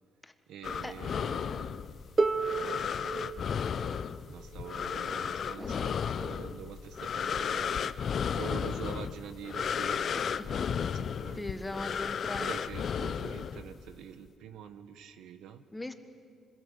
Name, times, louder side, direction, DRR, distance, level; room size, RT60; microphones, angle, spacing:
voice 1, 0.5-1.9 2.4-2.8 4.0-8.0 8.3-11.6 12.4-15.6, right 8 dB, 85° right, 10 dB, 1.2 m, -45 dB
sound 1, 0.6-13.9, left 7 dB, 55° left, 0.8 m, -34 dB
Harp, 2.2-8.0 9.0-9.1, right 3 dB, 25° right, 0.9 m, -36 dB
voice 2, 5.5-5.9 10.1-10.5 11.3-12.6 15.7-15.9, left 2 dB, 15° left, 8 dB, 1.5 m, -39 dB
25.5 x 21.5 x 8.0 m, 2.3 s
cardioid pair, 90°, 0 cm